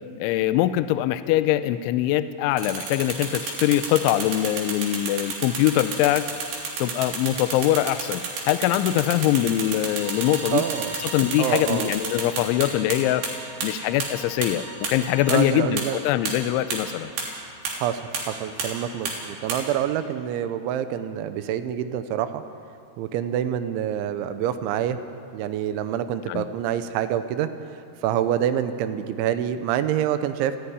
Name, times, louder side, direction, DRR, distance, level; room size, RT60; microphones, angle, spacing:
voice 1, 0.2-6.3 6.8-8.2 8.5-10.6 11.0-13.3 13.6-17.1 26.3-26.5, left 13 dB, 80° left, 12 dB, 2.9 m, -23 dB
sound 1, 2.6-13.0 13.2-13.3 13.6-13.7 14.0-14.1 14.4-14.5 14.8-14.9 15.3-15.4 15.8-15.9 16.3-16.4 16.7-16.8 17.2-17.3 17.7-17.8 18.1-18.2 18.6-18.7 19.1-19.2 19.5-19.6, right 5 dB, 60° right, 5.1 m, -30 dB
Bowed string instrument, 9.8-15.4, right 1 dB, 15° right, 3.8 m, -41 dB
voice 2, 10.5-10.9 11.4-11.9 15.3-16.0 17.7-22.4 23.0-25.0 25.3-27.5 28.0-30.6, right 10 dB, 80° right, 10 dB, 3.1 m, -26 dB
29.5 x 10.5 x 9.8 m, 2.6 s
omnidirectional pair, 5.7 m